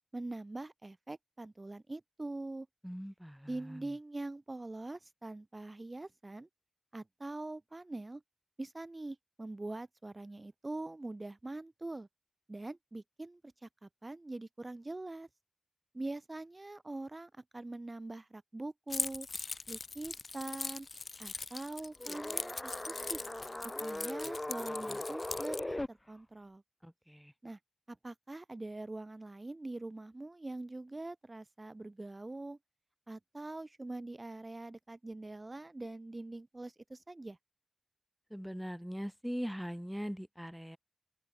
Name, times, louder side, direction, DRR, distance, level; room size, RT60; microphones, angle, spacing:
voice 1, 0.1-2.7 3.5-6.5 6.9-8.2 8.6-12.1 12.5-15.3 15.9-19.3 19.7-20.9 21.2-23.2 23.8-26.6 27.4-27.6 27.9-32.6 33.1-37.4, right 2 dB, 40° right, 1.1 m, -43 dB
voice 2, 2.8-3.9 26.8-27.3 38.3-40.8, equal, ahead, 1.1 m, -41 dB
Keys jangling, 18.9-25.6, left 3 dB, 70° left, 1.4 m, -41 dB
sound 1, 22.0-25.9, left 1 dB, 30° left, 0.7 m, -39 dB
open air
wide cardioid pair, 60°, 0 cm